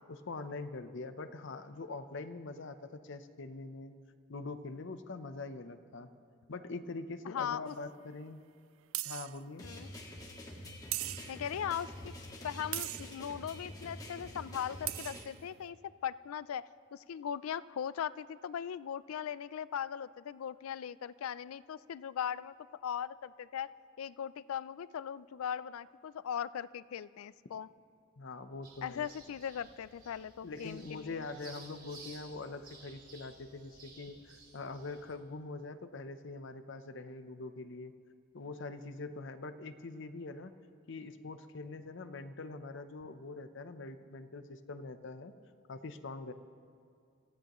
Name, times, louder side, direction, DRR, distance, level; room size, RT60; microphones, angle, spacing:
voice 1, 0.1-4.0 4.3-6.1 6.5-8.4 9.1-9.7 28.2-29.1 30.4-37.9 38.3-40.5 40.9-45.3 45.7-46.3, left 3 dB, 60° left, 10 dB, 0.7 m, -43 dB
voice 2, 7.2-7.8 9.6-9.9 11.3-12.1 12.4-15.8 16.0-22.5 22.8-27.7 28.8-31.3, left 8 dB, 90° left, 18 dB, 0.4 m, -39 dB
sound 1, 7.7-7.8 8.9-9.4 10.9-11.5 12.7-13.2 14.6-14.7 14.9-15.3, right 18 dB, 65° right, 0.3 m, -38 dB
sound 2, 9.6-15.2, left 1 dB, 20° left, 1.7 m, -47 dB
sound 3, 28.6-35.1, right 3 dB, 45° right, 2.8 m, -55 dB
26.0 x 15.0 x 3.0 m, 2.3 s
head